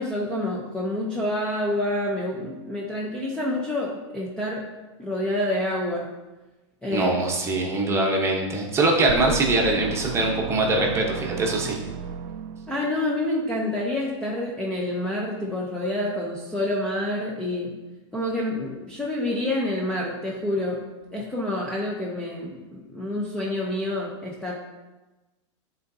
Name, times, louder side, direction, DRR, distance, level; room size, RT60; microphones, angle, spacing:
voice 1, 0.0-4.6 5.0-6.1 6.8-7.1 12.7-17.7 18.1-20.8 21.1-24.5, left 1 dB, 5° left, -4 dB, 0.7 m, -28 dB
voice 2, 6.9-11.8, right 2 dB, 15° right, 0 dB, 1.0 m, -23 dB
sound 1, 9.1-13.1, right 7 dB, 50° right, 0.4 m, -34 dB
9.1 x 4.0 x 2.7 m, 1.1 s
supercardioid pair, 135°, 16 cm